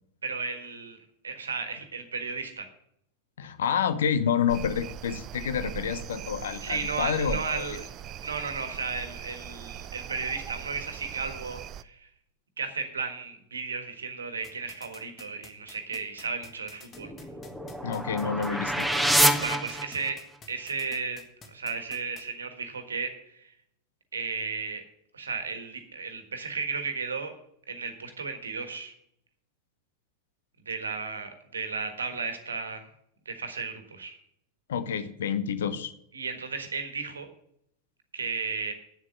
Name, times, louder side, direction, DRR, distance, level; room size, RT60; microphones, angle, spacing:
voice 1, 0.2-1.0 1.2-2.7 6.6-7.8 8.2-12.1 12.6-17.1 19.4-21.2 21.5-23.5 24.1-24.8 25.1-27.3 27.7-28.9 30.6-32.8 33.2-34.2 36.1-37.3 38.1-38.7, right 5 dB, 70° right, 8 dB, 1.5 m, -34 dB
voice 2, 3.4-7.7 17.8-18.9 34.7-35.9, left 7 dB, 60° left, 12 dB, 0.9 m, -28 dB
sound 1, 4.5-11.8, right 10 dB, 35° right, 0.4 m, -40 dB
sound 2, 14.4-22.2, left 4 dB, 20° left, 1.6 m, -49 dB
sound 3, 16.9-20.4, right 1 dB, ahead, 0.9 m, -27 dB
8.5 x 7.4 x 8.1 m, 0.73 s
figure-of-eight pair, 90°, 0 cm